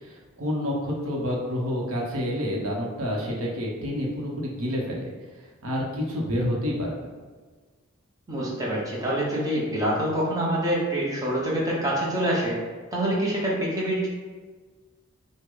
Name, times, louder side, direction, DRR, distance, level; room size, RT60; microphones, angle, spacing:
voice 1, 0.0-5.1 5.6-7.1, equal, 80° right, -2 dB, 0.9 m, -28 dB
voice 2, 8.3-12.6 12.9-14.1, right 1 dB, 15° right, -5 dB, 0.9 m, -26 dB
6.0 x 2.2 x 3.8 m, 1.4 s
head